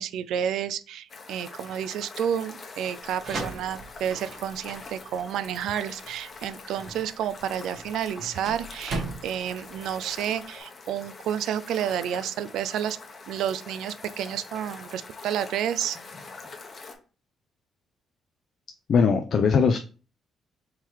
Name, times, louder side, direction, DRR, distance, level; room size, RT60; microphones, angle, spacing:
voice 1, 0.0-13.0 13.3-16.0, right 9 dB, 80° right, 14 dB, 0.3 m, -30 dB
sound 1, 1.1-16.9, left 4 dB, 40° left, 0.9 m, -44 dB
sound 2, 3.0-10.6, right 3 dB, 55° right, 1.4 m, -39 dB
voice 2, 18.9-19.8, left 5 dB, 55° left, 6 dB, 0.4 m, -20 dB
3.7 x 3.0 x 4.5 m, 0.37 s
cardioid pair, 90°, 0 cm